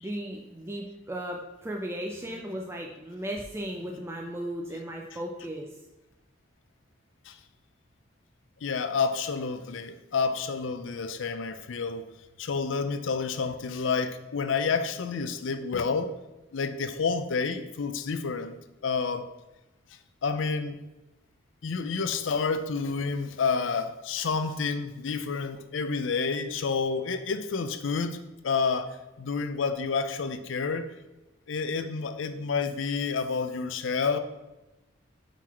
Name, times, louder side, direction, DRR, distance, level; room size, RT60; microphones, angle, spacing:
voice 1, 0.0-5.8, right 1 dB, 15° right, 1 dB, 0.4 m, -36 dB
voice 2, 8.6-12.0 12.4-16.1 16.5-18.6 18.8-19.3 20.2-20.8 21.6-30.9 31.5-34.2, left 5 dB, 70° left, 10 dB, 0.5 m, -29 dB
4.6 x 3.9 x 5.7 m, 1.0 s
head